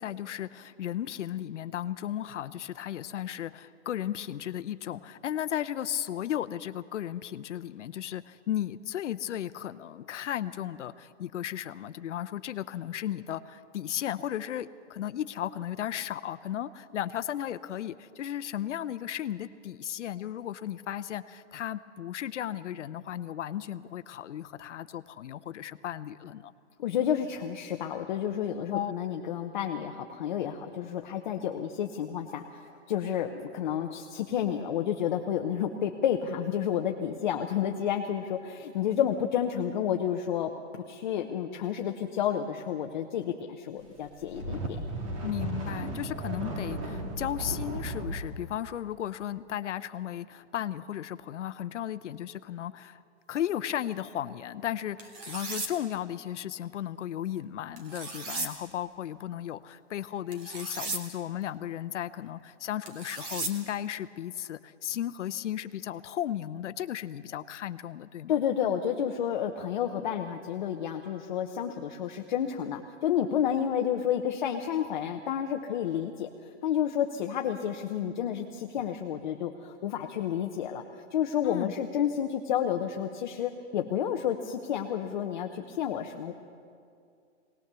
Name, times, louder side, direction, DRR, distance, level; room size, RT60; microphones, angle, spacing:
voice 1, 0.0-26.5 28.7-28.9 45.2-53.0 53.3-68.4 81.4-81.7, left 11 dB, 75° left, 13 dB, 0.8 m, -35 dB
voice 2, 26.8-44.8 68.3-76.3 76.6-80.8 81.1-86.3, left 9 dB, 40° left, 4 dB, 0.8 m, -30 dB
sound 1, 44.1-48.3, right 1 dB, 30° right, 1.9 m, -35 dB
sound 2, 55.0-55.7 57.8-58.5 60.3-61.0 62.9-63.5, right 3 dB, 10° right, 0.5 m, -36 dB
20.0 x 19.0 x 6.8 m, 2.4 s
hypercardioid pair, 175°, 36 cm